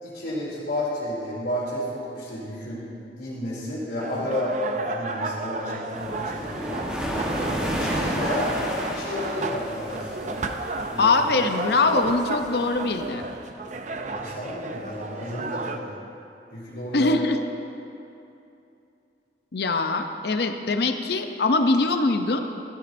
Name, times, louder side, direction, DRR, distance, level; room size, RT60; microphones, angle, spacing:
voice 1, 0.0-2.8 3.2-6.8 7.5-8.5 8.8-10.3 10.9-11.2 14.0-16.0 16.5-17.2, left 1 dB, 80° left, -10 dB, 2.9 m, -31 dB
sound 1, 4.0-15.8, right 3 dB, 40° right, 0.5 m, -33 dB
sound 2, 5.9-13.1, equal, 5° right, 1.1 m, -32 dB
voice 2, 11.0-13.2 16.9-17.4 19.5-22.4, left 3 dB, 60° left, 7 dB, 0.6 m, -22 dB
13.5 x 13.0 x 2.6 m, 2.7 s
head